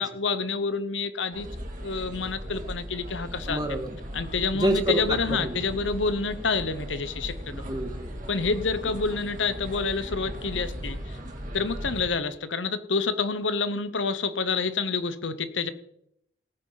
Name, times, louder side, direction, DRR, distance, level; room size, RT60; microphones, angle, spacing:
voice 1, 0.0-1.5 1.8-3.6 4.1-7.6 8.3-11.2 11.5-15.7, left 4 dB, 75° left, 13 dB, 1.0 m, -28 dB
sound 1, 1.3-12.1, equal, 45° right, 2.7 m, -37 dB
voice 2, 3.5-3.9 4.5-5.0 5.3-5.6 7.5-8.1, right 1 dB, 20° right, 4 dB, 1.7 m, -28 dB
18.5 x 9.6 x 4.1 m, 0.74 s
head